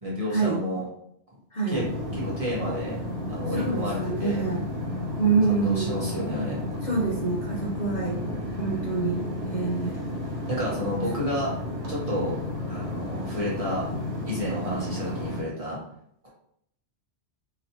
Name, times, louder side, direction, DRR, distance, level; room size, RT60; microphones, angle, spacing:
voice 1, 0.0-0.9 1.7-1.8 2.1-3.0 3.3-4.4 5.5-6.6 10.5-11.5 11.9-12.4 12.7-13.9 14.3-15.8 16.2-16.3, left 1 dB, 35° right, -6 dB, 1.0 m, -30 dB
voice 2, 1.5-1.8 3.5-4.6 5.2-6.3 6.8-8.2 8.6-10.0, right 4 dB, 45° left, -4 dB, 0.7 m, -27 dB
sound 1, 1.7-15.4, left 1 dB, 75° right, 1.2 m, -32 dB
3.0 x 2.8 x 2.7 m, 0.71 s
omnidirectional pair, 1.2 m